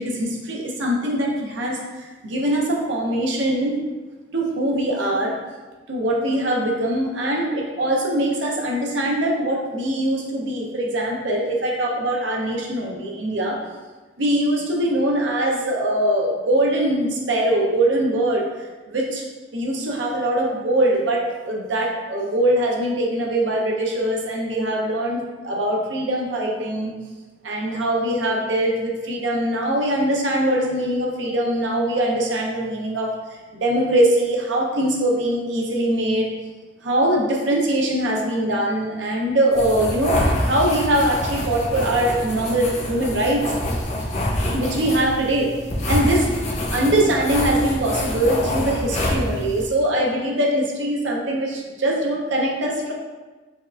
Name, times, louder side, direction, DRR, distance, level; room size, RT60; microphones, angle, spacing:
voice 1, 0.0-3.8 4.3-5.3 5.9-13.6 14.2-18.4 18.9-19.2 19.5-26.9 27.4-33.1 33.5-36.3 36.8-43.4 44.5-45.5 45.9-46.3 46.7-52.9, right 1 dB, 90° right, -1 dB, 0.7 m, -22 dB
sound 1, 39.5-49.7, left 1 dB, 40° left, 0.6 m, -26 dB
5.2 x 2.4 x 2.4 m, 1.3 s
head